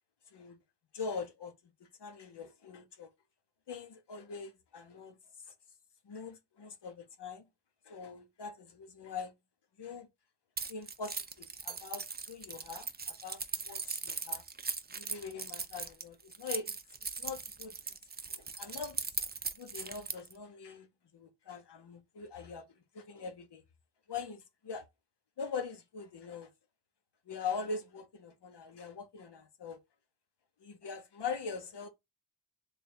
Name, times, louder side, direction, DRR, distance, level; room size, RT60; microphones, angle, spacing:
voice 1, 0.9-3.1 3.7-5.2 6.0-7.4 7.8-9.3 9.8-10.1 10.7-14.4 14.9-16.8 17.2-17.8 18.3-19.0 19.6-20.9 21.1-22.7 22.9-23.6 24.1-24.9 25.4-26.5 27.3-29.8 30.6-31.9, left 5 dB, 75° left, 0.9 m, -42 dB
Keys jangling, 10.6-20.3, right 5 dB, 25° right, 0.4 m, -39 dB
3.5 x 2.4 x 4.3 m
wide cardioid pair, 80°, 41 cm